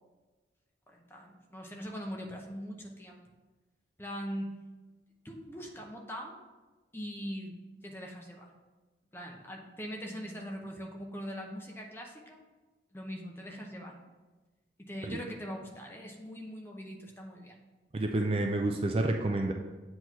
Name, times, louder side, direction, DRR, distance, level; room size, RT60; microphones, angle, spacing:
voice 1, 0.9-3.2 4.0-4.6 5.2-6.4 6.9-7.6 7.8-8.5 9.1-12.4 12.9-14.0 14.8-17.6, equal, 10° left, 1 dB, 0.7 m, -41 dB
voice 2, 17.9-19.5, right 2 dB, 30° right, 3 dB, 0.4 m, -29 dB
8.0 x 3.0 x 5.5 m, 1.2 s
head